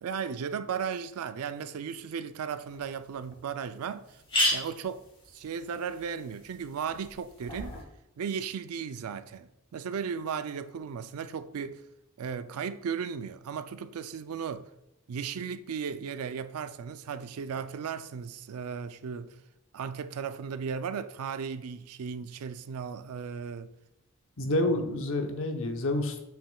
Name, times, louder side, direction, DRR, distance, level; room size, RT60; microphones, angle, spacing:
voice 1, 0.0-4.1 4.5-5.1 5.3-7.8 8.2-11.8 12.2-14.7 15.1-19.3 19.7-23.7 24.4-24.7, right 6 dB, 85° right, 0.4 m, -36 dB
sound 1, 2.7-2.8 3.3-3.4 3.6-3.7 4.0-7.8, equal, 25° left, 2.4 m, -34 dB
voice 2, 24.4-26.2, left 1 dB, 65° left, 0.8 m, -28 dB
7.3 x 6.0 x 2.3 m
head